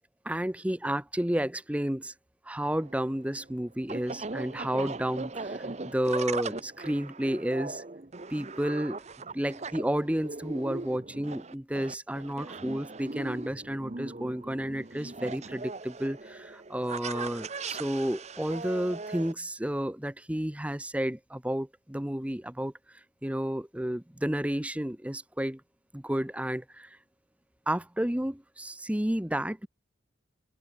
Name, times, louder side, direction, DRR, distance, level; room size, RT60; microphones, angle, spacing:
voice 1, 0.2-2.1 2.5-7.8 8.3-9.0 9.3-22.7 23.2-25.6 25.9-26.9 27.7-29.7, right 1 dB, 5° right, 0.8 m, -31 dB
sound 1, 2.7-19.3, right 3 dB, 35° right, 0.9 m, -39 dB
open air
head